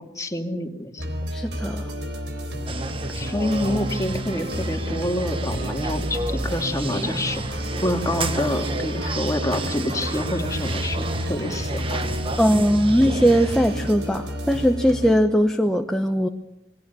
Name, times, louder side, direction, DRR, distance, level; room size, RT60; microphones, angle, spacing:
voice 1, 0.2-1.0 3.2-12.2, left 1 dB, 20° left, 3 dB, 2.5 m, -27 dB
sound 1, 1.0-15.1, equal, 90° right, 3.8 m, -30 dB
voice 2, 1.3-1.9 12.4-16.3, equal, 5° left, 4 dB, 0.9 m, -20 dB
sound 2, 2.7-13.9, right 2 dB, 30° right, 1.4 m, -32 dB
29.0 x 21.0 x 7.0 m, 0.88 s
head